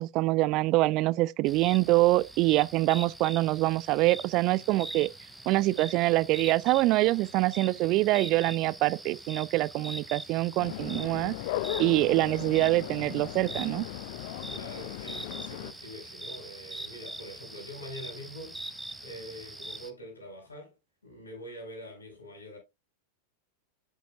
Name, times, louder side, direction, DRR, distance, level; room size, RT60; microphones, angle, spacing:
voice 1, 0.0-5.1 5.5-11.4 11.8-13.9, right 19 dB, 40° right, 0.3 m, -25 dB
sound 1, 1.5-19.9, right 1 dB, 5° right, 0.8 m, -43 dB
sound 2, 10.6-15.7, left 16 dB, 50° left, 0.3 m, -37 dB
voice 2, 14.5-20.7 21.0-22.6, equal, 75° left, 4.1 m, -45 dB
10.5 x 5.3 x 2.3 m
figure-of-eight pair, 90°, 0 cm